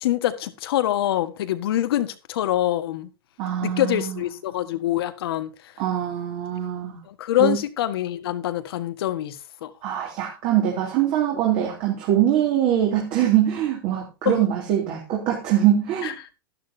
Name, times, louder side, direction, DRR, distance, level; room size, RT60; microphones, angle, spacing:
voice 1, 0.0-3.1 3.6-5.5 7.1-9.7 14.2-14.4 16.0-16.1, left 13 dB, 75° left, 1.5 m, -25 dB
voice 2, 3.4-4.2 5.8-7.0 7.4-7.6 9.8-16.2, right 11 dB, 45° right, 3.3 m, -23 dB
12.0 x 11.5 x 2.7 m
supercardioid pair, 135°, 13 cm